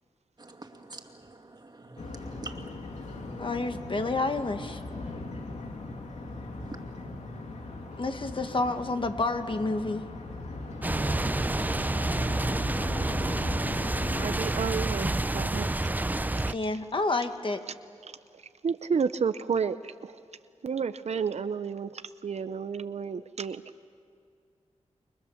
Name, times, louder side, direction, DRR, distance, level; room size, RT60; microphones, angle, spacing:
voice 1, 0.4-2.7 6.6-6.8, right 3 dB, 35° right, 4 dB, 2.5 m, -45 dB
sound 1, 2.0-14.4, left 2 dB, 75° left, 2.9 m, -39 dB
voice 2, 3.4-4.8 8.0-10.1 16.5-17.6, left 3 dB, 45° left, 7 dB, 1.6 m, -29 dB
sound 2, 10.8-16.5, right 2 dB, 15° right, 0.6 m, -28 dB
voice 3, 14.2-15.7 16.4-16.6 18.0-20.2 20.6-23.6, right 6 dB, 65° right, 12 dB, 0.7 m, -31 dB
29.5 x 23.5 x 7.1 m, 2.2 s
cardioid pair, 70°, 12 cm